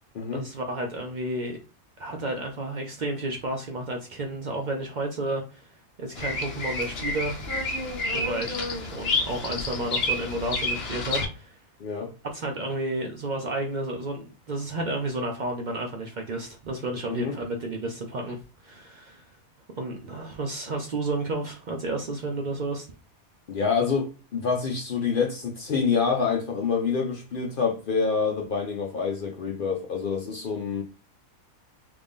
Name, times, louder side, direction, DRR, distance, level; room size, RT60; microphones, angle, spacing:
voice 1, 0.3-1.6 2.0-5.7 6.0-7.4 8.1-11.6 12.2-18.4 18.6-19.2 19.8-22.9, right 2 dB, 70° right, 0.4 m, -31 dB
Bird vocalization bird call bird song, 6.1-11.2, left 2 dB, 50° left, 0.9 m, -29 dB
voice 2, 11.8-12.1 17.1-17.4 23.5-30.8, left 5 dB, 70° left, 0.5 m, -27 dB
3.2 x 2.5 x 3.5 m
omnidirectional pair, 1.5 m